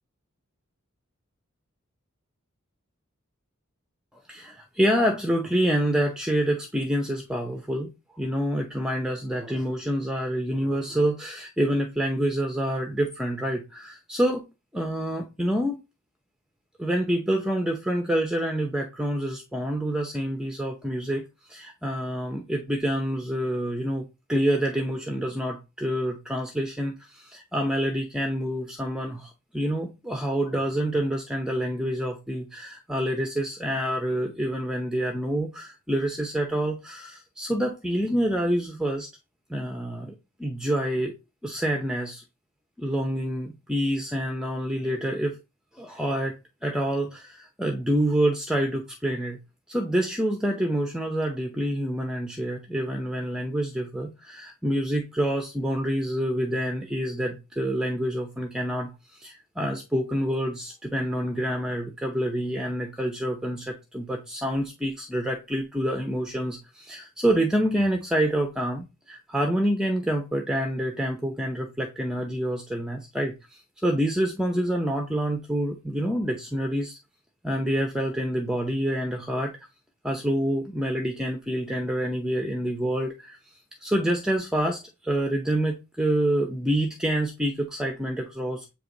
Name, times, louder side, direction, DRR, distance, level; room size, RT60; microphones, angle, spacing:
voice 1, 4.3-14.4 14.7-15.8 16.8-39.1 39.5-40.1 40.4-41.1 41.4-42.2 42.8-45.4 45.7-46.4 46.6-49.4 49.7-77.0 77.4-79.5 80.0-83.4 83.8-88.7, right 1 dB, 5° right, 0.7 m, -27 dB
8.5 x 3.0 x 3.8 m
head